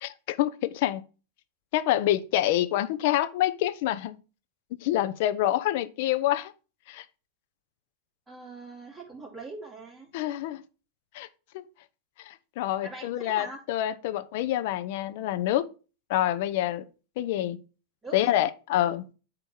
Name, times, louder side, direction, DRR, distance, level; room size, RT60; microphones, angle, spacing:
voice 1, 0.0-1.0 1.7-4.2 4.8-6.5 6.9-7.0 10.1-10.6 11.1-11.3 11.5-11.6 12.2-15.7 16.1-16.9 17.2-17.6 18.1-19.1, left 13 dB, 60° left, 0.7 m, -27 dB
voice 2, 8.3-10.1 12.8-13.6 18.0-18.4, right 3 dB, 15° right, 2.9 m, -42 dB
8.9 x 3.0 x 5.5 m
hypercardioid pair, 105°, 0 cm